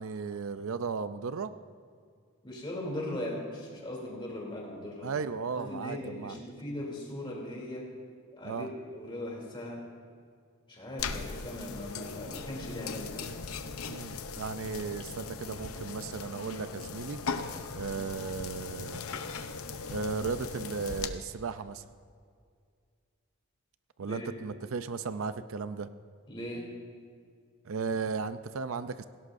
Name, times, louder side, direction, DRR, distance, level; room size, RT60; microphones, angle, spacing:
voice 1, 0.0-1.5 5.0-6.4 8.4-8.7 13.9-17.2 17.8-19.0 19.9-21.8 24.0-25.9 27.7-29.0, right 5 dB, 75° right, 12 dB, 0.5 m, -35 dB
voice 2, 2.4-5.1 5.6-7.9 8.3-9.8 10.7-13.3 24.0-24.3 26.3-26.7, left 1 dB, 25° left, -2 dB, 3.0 m, -39 dB
sound 1, 11.0-21.1, left 4 dB, 85° left, 0.8 m, -39 dB
17.5 x 17.0 x 2.6 m, 2.1 s
head